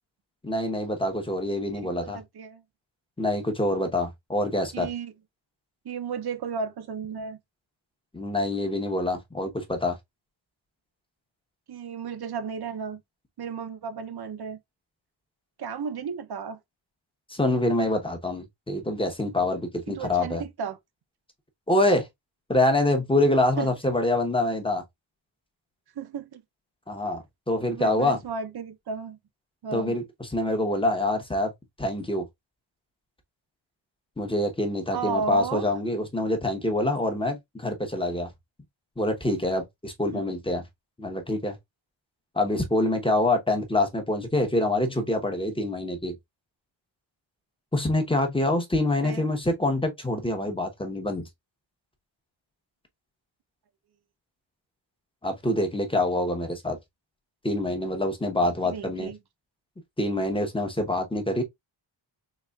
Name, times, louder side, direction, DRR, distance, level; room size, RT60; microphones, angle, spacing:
voice 1, 0.4-2.2 3.2-4.9 8.1-10.0 17.3-20.4 21.7-22.1 22.5-24.8 26.9-28.2 29.7-31.5 31.8-32.3 34.2-38.3 39.0-40.6 41.0-41.6 42.3-46.1 47.7-51.2 55.2-56.8 57.4-59.1 60.0-61.4, left 1 dB, 10° left, 0.8 m, -26 dB
voice 2, 1.7-2.6 4.7-5.1 5.8-7.4 11.7-13.0 13.4-14.6 15.6-16.6 19.9-20.8 23.6-23.7 26.0-26.4 27.7-29.2 29.6-30.0 34.9-35.7 40.1-40.3 49.0-49.3 58.6-59.2, right 6 dB, 55° right, 0.7 m, -34 dB
4.1 x 3.0 x 2.3 m
wide cardioid pair, 120°, 47 cm